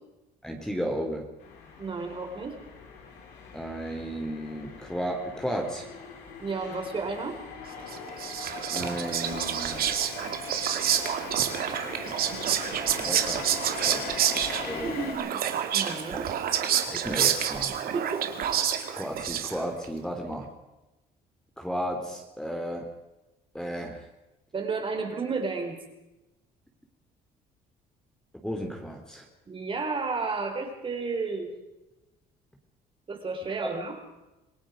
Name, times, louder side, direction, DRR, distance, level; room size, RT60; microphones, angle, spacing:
voice 1, 0.4-1.3 3.5-5.9 8.7-9.8 13.0-13.5 13.9-14.2 14.6-14.9 16.1-16.2 16.9-17.8 18.9-20.5 21.6-22.9 23.5-24.0 28.4-29.2, equal, 5° left, 2 dB, 3.3 m, -33 dB
sound 1, 1.4-15.1, left 4 dB, 85° left, 6.8 m, -41 dB
voice 2, 1.8-2.6 6.4-7.4 14.7-15.4 15.7-16.3 17.9-18.2 24.5-25.8 29.5-31.5 33.1-34.0, right 4 dB, 30° right, 3 dB, 4.5 m, -32 dB
Whispering, 7.9-19.8, right 9 dB, 60° right, 2.3 m, -28 dB
27.5 x 18.5 x 5.2 m, 1.0 s
cardioid pair, 110°, 17 cm